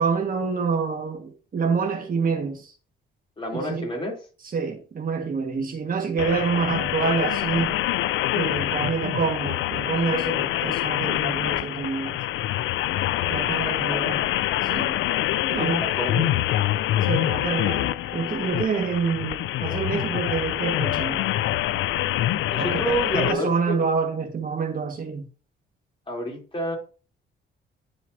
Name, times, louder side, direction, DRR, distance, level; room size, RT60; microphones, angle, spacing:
voice 1, 0.0-2.7 3.5-3.9 4.5-7.8 8.3-12.1 13.3-14.2 14.6-14.9 15.4-15.9 16.1-16.3 17.0-21.2 22.6-25.3, right 5 dB, 45° right, 1.6 m, -27 dB
voice 2, 3.4-4.2 13.6-14.2 15.8-16.4 22.5-23.4 26.1-26.8, equal, 25° left, 3.2 m, -29 dB
sound 1, 6.2-23.3, left 14 dB, 75° left, 0.4 m, -25 dB
12.5 x 4.5 x 2.7 m
cardioid pair, 90°, 20 cm